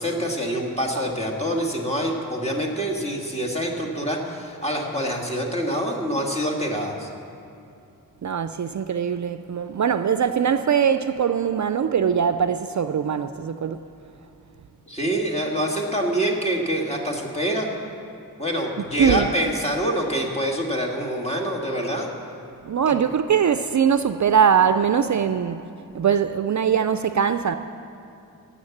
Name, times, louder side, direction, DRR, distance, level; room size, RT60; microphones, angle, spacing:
voice 1, 0.0-7.1 14.9-17.7 18.4-22.1 22.9-23.0, equal, 15° left, 0 dB, 1.9 m, -26 dB
voice 2, 8.2-13.8 19.0-19.3 22.6-25.6 25.9-27.6, right 7 dB, 50° right, 10 dB, 0.4 m, -21 dB
17.5 x 7.2 x 7.2 m, 2.6 s
wide cardioid pair, 80°, 37 cm